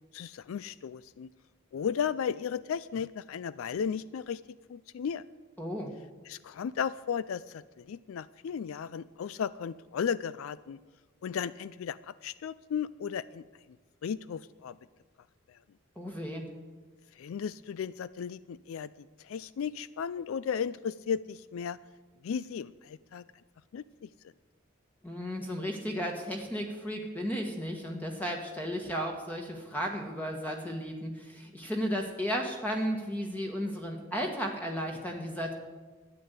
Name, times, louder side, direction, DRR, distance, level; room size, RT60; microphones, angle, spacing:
voice 1, 0.1-1.3 1.7-4.4 4.7-5.2 6.3-10.8 11.2-13.4 14.0-14.8 15.5-15.6 17.2-21.8 22.2-23.2 23.7-24.1, left 7 dB, 75° left, 17 dB, 0.3 m, -35 dB
voice 2, 5.6-5.9 16.0-16.5 25.0-35.5, equal, 10° left, 1 dB, 1.2 m, -34 dB
12.5 x 9.6 x 8.1 m, 1.3 s
head